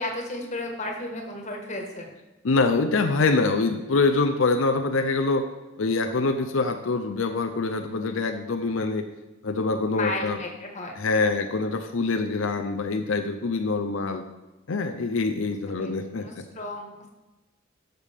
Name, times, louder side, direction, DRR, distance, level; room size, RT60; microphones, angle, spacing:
voice 1, 0.0-2.1 9.9-11.0 15.7-15.9 16.2-17.1, left 2 dB, 35° left, 1 dB, 1.6 m, -33 dB
voice 2, 2.4-5.5 5.8-9.1 9.4-10.4 11.0-14.3 14.7-16.4, left 3 dB, 90° left, 6 dB, 0.6 m, -25 dB
11.5 x 6.7 x 3.5 m, 1.1 s
head